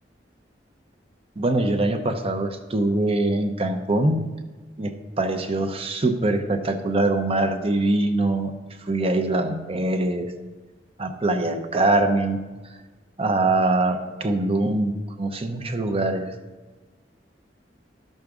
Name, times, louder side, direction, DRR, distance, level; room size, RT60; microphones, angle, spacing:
voice 1, 1.4-4.2 4.8-8.5 8.8-10.3 11.0-12.4 13.2-16.3, right 2 dB, 35° right, 6 dB, 0.7 m, -23 dB
12.0 x 6.4 x 3.6 m, 1.3 s
head